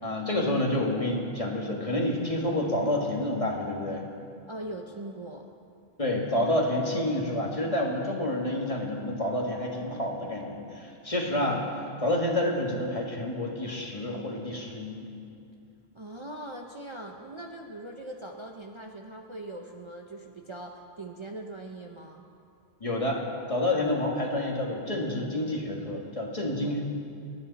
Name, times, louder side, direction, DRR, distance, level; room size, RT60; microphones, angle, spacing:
voice 1, 0.0-4.0 6.0-11.7 12.0-15.1 22.8-23.2 23.5-26.8, left 1 dB, 30° left, -1 dB, 2.0 m, -28 dB
voice 2, 4.5-5.5 15.9-22.2 26.6-26.7, right 1 dB, 30° right, 1 dB, 0.8 m, -41 dB
29.5 x 9.8 x 4.1 m, 2.6 s
omnidirectional pair, 1.1 m